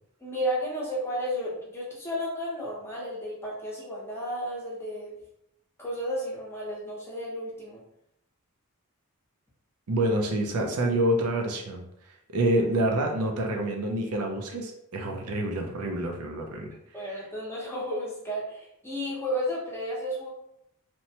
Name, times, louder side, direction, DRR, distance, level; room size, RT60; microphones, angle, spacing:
voice 1, 0.2-5.1 5.8-7.8 16.9-20.3, equal, 10° left, -5 dB, 0.7 m, -33 dB
voice 2, 9.9-11.8 12.3-16.7, right 1 dB, 80° right, 2 dB, 0.5 m, -27 dB
2.9 x 2.1 x 2.8 m, 0.76 s
head